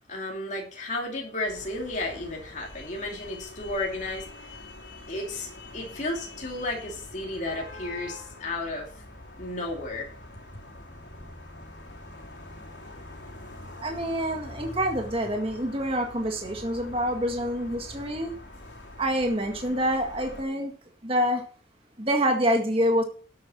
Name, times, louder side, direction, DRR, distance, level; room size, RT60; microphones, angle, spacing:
voice 1, 0.1-4.5 5.1-8.9 9.4-10.1, left 2 dB, 40° left, -1 dB, 2.7 m, -33 dB
sound 1, 1.4-20.4, left 1 dB, 70° left, 3.9 m, -44 dB
voice 2, 13.8-18.3 19.0-20.7 21.0-21.4 22.0-23.0, equal, 30° right, 2 dB, 1.8 m, -26 dB
11.5 x 8.6 x 4.4 m, 0.40 s
head